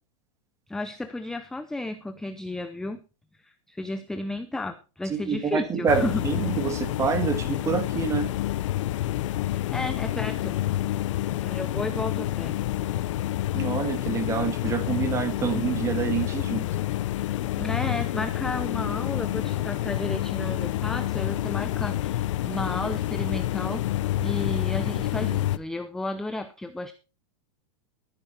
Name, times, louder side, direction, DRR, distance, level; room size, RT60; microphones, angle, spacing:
voice 1, 0.7-3.0 3.4-6.2 9.5-10.6 11.4-12.5 17.6-23.9 24.2-26.9, left 2 dB, 5° left, 0.6 m, -33 dB
voice 2, 5.1-8.3 13.5-16.7, right 6 dB, 15° right, 1.8 m, -27 dB
sound 1, 5.9-25.6, left 14 dB, 65° left, 0.8 m, -28 dB
13.5 x 10.5 x 4.4 m
supercardioid pair, 155°, 17 cm